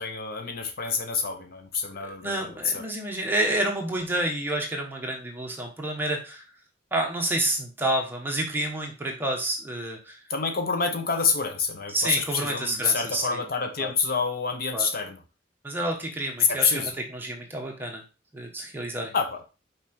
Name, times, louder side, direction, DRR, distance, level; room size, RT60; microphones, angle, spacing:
voice 1, 0.0-2.8 10.3-15.2 16.5-16.9 19.1-19.4, left 5 dB, 50° left, 6 dB, 0.8 m, -27 dB
voice 2, 2.0-6.5 6.9-10.2 11.9-13.4 13.8-13.9 14.7-14.9 15.6-18.0 18.3-19.1, right 1 dB, 10° right, 0 dB, 1.3 m, -29 dB
5.8 x 5.0 x 4.4 m, 0.31 s
head